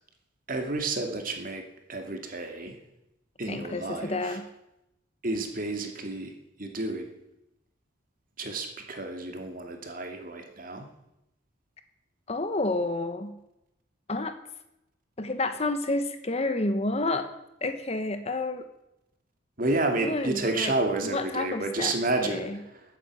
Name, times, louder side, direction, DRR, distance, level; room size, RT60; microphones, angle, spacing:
voice 1, 0.5-1.6 1.9-2.8 3.4-4.4 5.2-6.3 6.6-7.1 8.4-10.9 19.6-22.8, right 2 dB, 45° right, 4 dB, 2.5 m, -30 dB
voice 2, 3.4-4.5 12.3-13.4 14.1-14.4 15.2-17.3 17.6-18.7 19.9-20.7 21.0-22.0 22.2-22.6, left 2 dB, 35° left, 9 dB, 1.1 m, -30 dB
14.5 x 8.8 x 9.0 m, 0.87 s
head